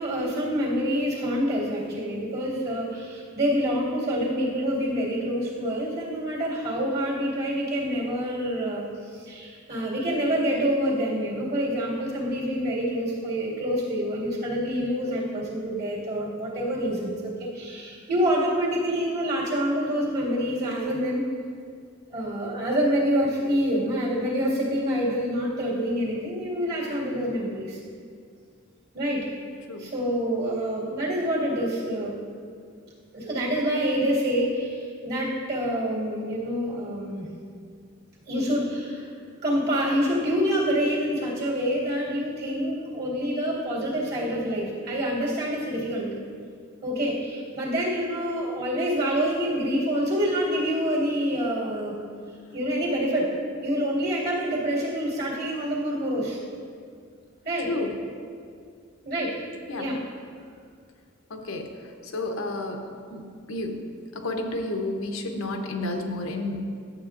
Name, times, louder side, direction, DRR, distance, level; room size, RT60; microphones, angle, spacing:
voice 1, 0.0-21.3 22.1-27.8 28.9-29.3 29.8-32.1 33.1-37.3 38.3-39.1 39.4-46.1 46.8-52.0 52.5-53.4 53.6-56.4 57.4-57.7 59.1-59.4 59.8-60.1, equal, 55° right, -5 dB, 2.0 m, -27 dB
voice 2, 61.3-61.7 62.0-62.8 63.1-63.9 64.1-66.6, left 2 dB, 90° left, 3 dB, 0.8 m, -31 dB
11.0 x 7.1 x 2.5 m, 2.2 s
head